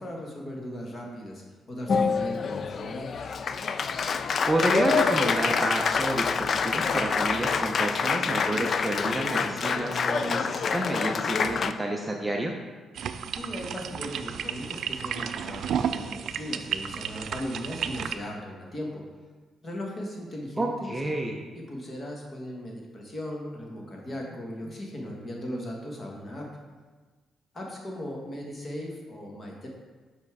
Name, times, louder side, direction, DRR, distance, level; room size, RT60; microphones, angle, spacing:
voice 1, 0.0-3.3 13.4-19.0 19.6-20.9 21.5-26.5 27.5-29.7, equal, 30° left, -1 dB, 1.4 m, -38 dB
Applause, 1.9-11.7, left 5 dB, 45° left, 0.3 m, -26 dB
voice 2, 4.5-12.5 20.6-21.4, right 1 dB, 10° right, 1 dB, 0.6 m, -29 dB
sound 1, 12.9-18.1, right 8 dB, 65° right, 0.3 m, -32 dB
5.4 x 5.1 x 4.7 m, 1.4 s
cardioid pair, 125°, 0 cm